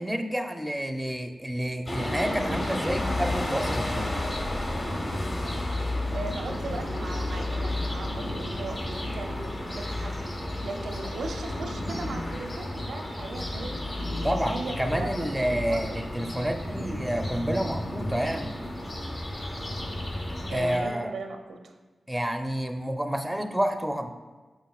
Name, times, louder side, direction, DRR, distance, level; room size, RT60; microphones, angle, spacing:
voice 1, 0.0-4.3 14.2-18.6 20.5-21.2 22.1-24.1, right 1 dB, 5° right, 6 dB, 0.5 m, -29 dB
sound 1, 1.9-20.8, left 1 dB, 40° left, 1.1 m, -32 dB
voice 2, 6.1-10.2 10.6-13.8 14.4-16.0 16.7-17.0 20.5-21.7, right 3 dB, 90° right, 4 dB, 0.6 m, -38 dB
6.3 x 6.2 x 2.4 m, 1.3 s
cardioid pair, 50°, 0 cm